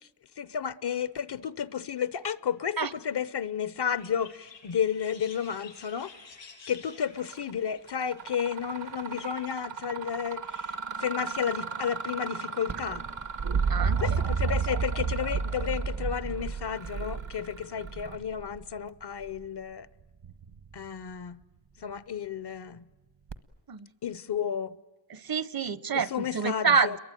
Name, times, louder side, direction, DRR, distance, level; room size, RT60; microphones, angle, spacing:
voice 1, 0.4-6.1 6.7-13.0 14.0-19.9 20.7-21.4 21.8-22.8 24.0-24.7 25.9-27.0, left 8 dB, 65° left, 0.8 m, -32 dB
sound 1, 3.9-9.7, left 4 dB, 90° left, 6.6 m, -52 dB
Mechanisms, 7.2-7.5 7.9-18.4, right 6 dB, 90° right, 1.5 m, -39 dB
sound 2, 12.7-18.6 20.2-20.7 23.3-23.4, right 5 dB, 70° right, 1.3 m, -30 dB
voice 2, 13.7-14.2 23.7-23.9 25.1-27.0, right 5 dB, 55° right, 0.8 m, -27 dB
29.0 x 22.5 x 9.1 m
wide cardioid pair, 65°, 43 cm